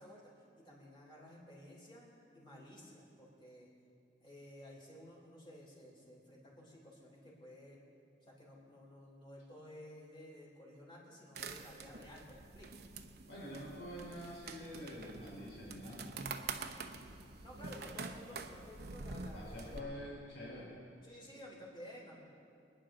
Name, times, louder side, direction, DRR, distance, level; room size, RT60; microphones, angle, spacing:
voice 1, 0.0-2.1 2.3-3.7 4.2-7.8 8.2-12.8 17.4-20.1 21.0-22.2, left 1 dB, 30° left, -4 dB, 3.8 m, -54 dB
sound 1, 11.4-19.8, right 4 dB, 60° right, 0.8 m, -47 dB
voice 2, 13.3-16.1 16.8-17.0 17.5-18.0 19.1-20.8, equal, 90° left, -5 dB, 4.2 m, -47 dB
26.0 x 10.0 x 3.8 m, 2.4 s
head